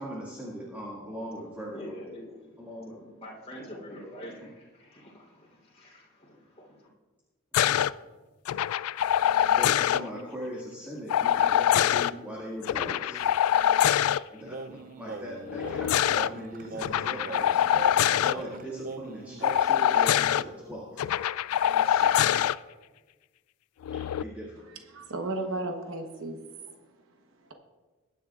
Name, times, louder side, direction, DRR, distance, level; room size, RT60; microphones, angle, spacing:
voice 1, 0.0-1.9 2.6-3.0 7.5-7.8 9.4-13.3 14.3-17.6 18.2-21.1 21.7-22.3 24.2-24.6, equal, 10° right, -6 dB, 2.0 m, -40 dB
voice 2, 1.7-6.9, equal, 30° left, -4 dB, 3.4 m, -45 dB
sound 1, 7.5-7.9 8.5-10.0 11.1-12.1 12.6-14.2 15.5-16.3 16.8-18.3 19.4-20.4 21.0-22.5 23.8-24.2, left 10 dB, 90° left, 0.3 m, -24 dB
sound 2, 14.4-19.6, right 3 dB, 40° right, 0.4 m, -41 dB
voice 3, 24.7-26.4, right 2 dB, 65° right, 4 dB, 1.0 m, -34 dB
22.0 x 10.0 x 2.4 m, 1.3 s
head